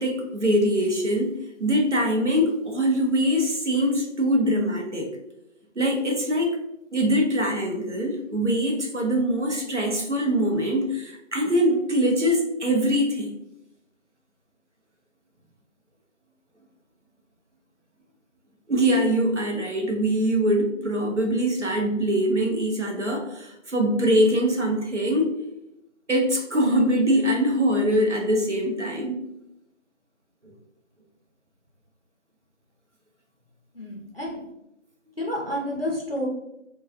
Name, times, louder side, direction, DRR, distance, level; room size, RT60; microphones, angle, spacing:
voice 1, 0.0-5.1 5.8-6.6 6.9-13.3 18.7-25.3 26.1-29.2 30.4-30.5, equal, 65° right, 1 dB, 0.8 m, -23 dB
voice 2, 33.7-34.4 35.2-36.3, equal, 50° left, -3 dB, 0.6 m, -30 dB
3.1 x 2.3 x 2.4 m, 0.83 s
figure-of-eight pair, 175°, 38 cm